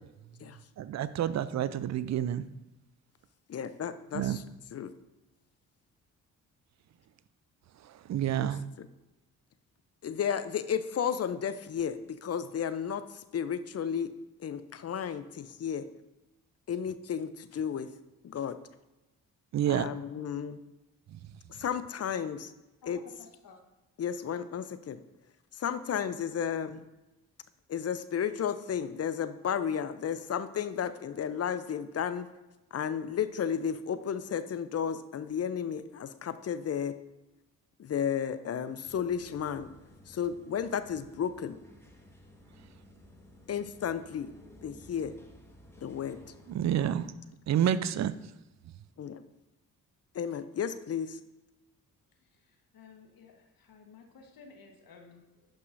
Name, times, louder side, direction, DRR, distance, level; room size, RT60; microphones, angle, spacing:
voice 1, 0.8-2.5 4.1-4.4 7.8-8.6 19.5-19.9 21.1-21.2 46.5-47.1 47.5-48.2, right 10 dB, 45° right, 15 dB, 0.5 m, -29 dB
voice 2, 3.5-4.4 4.7-4.9 8.4-8.5 8.8-8.9 10.0-14.1 14.4-15.9 16.7-17.9 18.2-18.6 19.7-20.6 21.5-22.5 22.9-23.0 24.0-25.0 25.6-26.8 27.7-32.3 32.7-36.9 37.8-39.7 40.1-41.5 43.5-44.3 44.6-45.1 45.8-46.2 49.0-49.2 50.1-51.2, left 8 dB, 40° left, 12 dB, 0.6 m, -33 dB
voice 3, 22.8-23.6 52.7-55.5, left 5 dB, 60° left, 3 dB, 1.4 m, -54 dB
sound 1, 38.8-47.1, left 1 dB, 5° left, 1.4 m, -55 dB
11.0 x 5.5 x 2.6 m, 1.0 s
hypercardioid pair, 45°, 40 cm